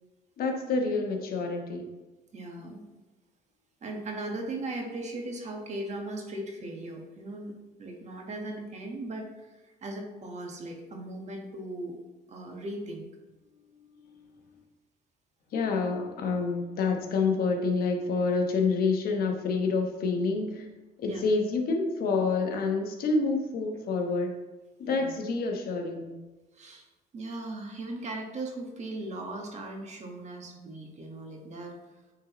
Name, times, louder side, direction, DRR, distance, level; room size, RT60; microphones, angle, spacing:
voice 1, 0.4-1.9 15.5-20.7 21.0-24.4 24.8-26.1, left 4 dB, 60° left, 3 dB, 1.0 m, -28 dB
voice 2, 2.3-2.8 3.8-7.5 7.8-9.5 9.8-12.0 12.3-13.1 21.1-21.2 24.9-25.1 26.5-26.9 27.1-31.8, right 2 dB, 40° right, 2 dB, 1.4 m, -38 dB
8.9 x 4.0 x 3.0 m, 1.2 s
cardioid pair, 110°, 17 cm